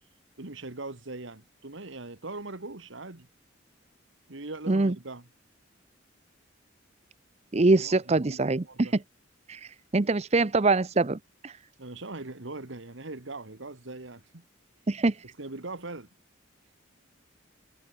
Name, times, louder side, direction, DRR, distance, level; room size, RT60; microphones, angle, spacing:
voice 1, 0.4-3.3 4.3-5.3 7.8-8.9 11.8-14.5 15.4-16.1, right 2 dB, 70° right, 1.8 m, -41 dB
voice 2, 7.5-8.9 9.5-11.6 14.9-15.2, right 3 dB, 35° right, 0.6 m, -24 dB
head